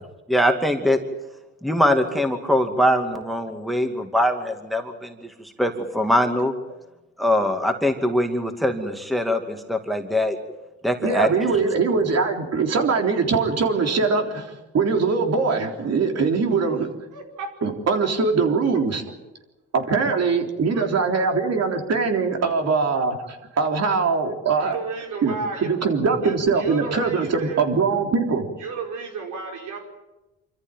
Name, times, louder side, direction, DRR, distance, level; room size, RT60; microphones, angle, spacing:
voice 1, 0.3-1.0 1.6-5.3 5.6-6.5 7.2-10.4 10.8-11.3 11.5-11.7, equal, ahead, 5 dB, 2.4 m, -22 dB
voice 2, 11.0-16.9 17.6-19.0 19.7-24.8 25.2-25.3 25.6-28.5, right 4 dB, 55° right, 4 dB, 3.7 m, -22 dB
voice 3, 17.1-17.5 20.7-20.9 24.6-25.7 26.2-27.7 28.6-29.8, right 5 dB, 80° right, 2 dB, 5.2 m, -33 dB
26.5 x 14.0 x 9.2 m, 1.0 s
cardioid pair, 90°, 30 cm